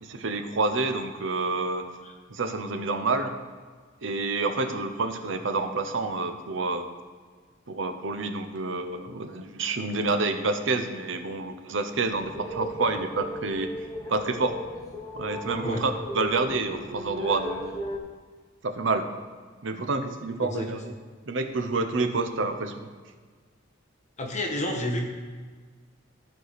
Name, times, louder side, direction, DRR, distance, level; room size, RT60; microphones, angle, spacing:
voice 1, 0.0-1.9 2.3-3.4 4.0-6.9 7.7-13.8 14.1-14.6 15.2-17.7 18.6-19.1 19.6-20.9 21.3-22.9, right 3 dB, 70° right, 8 dB, 0.7 m, -28 dB
sound 1, 12.1-18.0, equal, 20° left, 1.0 m, -36 dB
voice 2, 24.2-25.0, left 1 dB, 35° left, 1 dB, 1.1 m, -29 dB
14.0 x 4.8 x 4.1 m, 1.5 s
head